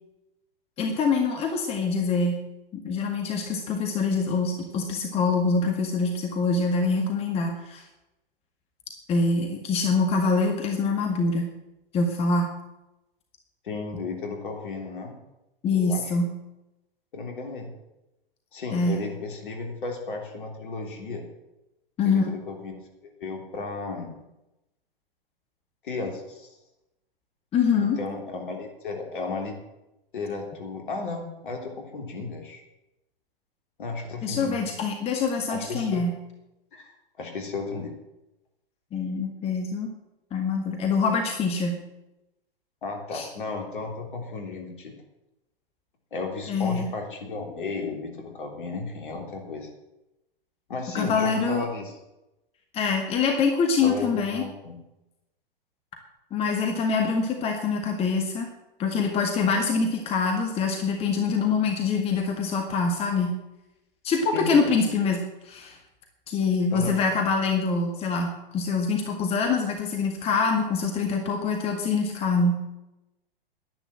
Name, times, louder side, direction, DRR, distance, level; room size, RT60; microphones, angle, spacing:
voice 1, 0.8-2.4 2.7-7.8 9.1-11.5 11.9-12.5 15.6-16.3 18.7-19.0 22.0-22.3 27.5-28.0 34.2-36.1 38.9-39.9 40.3-41.8 43.1-43.3 46.5-46.9 50.9-51.6 52.7-54.4 56.3-58.5 58.8-63.3 64.0-65.8 66.3-72.6, left 4 dB, 20° left, 3 dB, 1.9 m, -25 dB
voice 2, 13.6-15.1 15.7-16.1 17.1-17.7 18.5-21.2 22.0-24.2 25.8-26.5 27.8-29.6 30.1-32.6 33.8-34.6 35.5-36.0 36.7-36.9 37.2-37.9 42.8-44.9 46.1-49.7 50.7-51.9 53.8-54.8 64.3-64.8 66.7-67.0, left 3 dB, 60° left, 3 dB, 3.5 m, -34 dB
11.0 x 11.0 x 7.6 m, 0.93 s
figure-of-eight pair, 110°, 29 cm